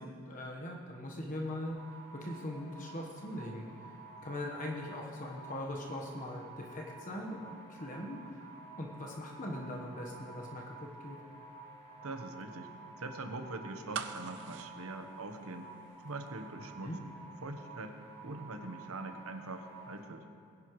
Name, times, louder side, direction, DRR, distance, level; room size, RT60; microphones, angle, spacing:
voice 1, 0.0-4.0 4.2-11.2 16.8-17.0, left 1 dB, 35° left, -1 dB, 1.3 m, -41 dB
sound 1, 1.7-20.0, right 3 dB, 10° left, 2.9 m, -52 dB
voice 2, 12.0-15.7 16.0-16.9 17.4-18.0 18.2-20.2, right 2 dB, 75° right, 6 dB, 1.1 m, -43 dB
sound 2, 13.9-16.0 16.3-16.4, right 6 dB, 55° right, 0.6 m, -42 dB
21.0 x 10.5 x 3.2 m, 2.4 s
head